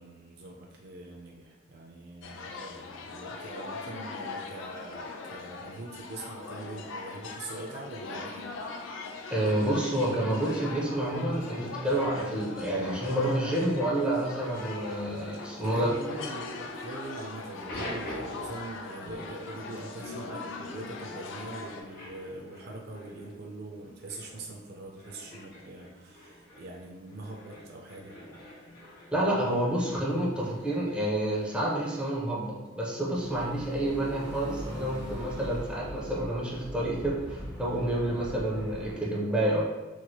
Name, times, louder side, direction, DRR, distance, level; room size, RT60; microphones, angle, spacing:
voice 1, 0.0-8.4 15.6-28.1 33.4-33.5 38.1-38.2, right 2 dB, 55° right, -1 dB, 0.4 m, -43 dB
sound 1, 2.2-21.8, left 3 dB, 90° left, 0.4 m, -41 dB
voice 2, 9.3-15.9 29.1-39.6, right 1 dB, 5° right, -5 dB, 0.6 m, -29 dB
sound 2, 14.5-32.1, left 1 dB, 55° left, 0.9 m, -47 dB
sound 3, 33.1-38.9, equal, 20° left, 1.3 m, -41 dB
3.1 x 2.9 x 2.2 m, 1.1 s
head